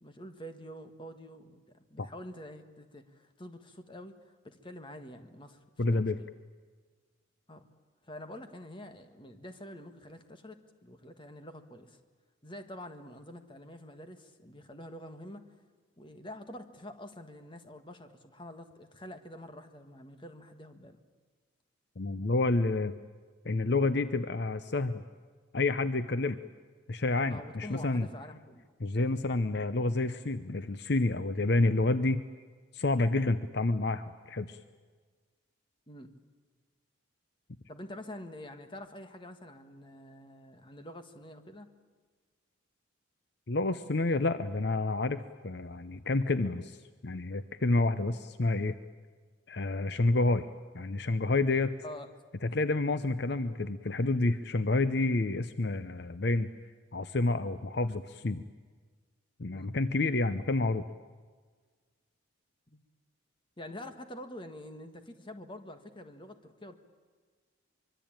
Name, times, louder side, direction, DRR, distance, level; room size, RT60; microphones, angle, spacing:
voice 1, 0.0-6.3 7.5-7.6 8.0-12.0 12.4-15.4 16.0-21.0 27.3-28.7 35.9-36.1 37.7-41.7 51.8-52.1 59.5-59.7 62.7-62.8 63.6-66.7, left 1 dB, 25° left, 7 dB, 1.6 m, -47 dB
voice 2, 5.8-6.2 22.0-22.9 23.4-25.0 25.5-26.4 26.9-28.1 28.8-32.2 32.7-34.6 43.5-46.8 47.0-48.8 49.5-50.5 50.7-51.7 52.4-56.5 56.9-58.4 59.4-60.8, left 2 dB, 55° left, 12 dB, 0.7 m, -29 dB
24.5 x 23.5 x 9.0 m, 1.5 s
head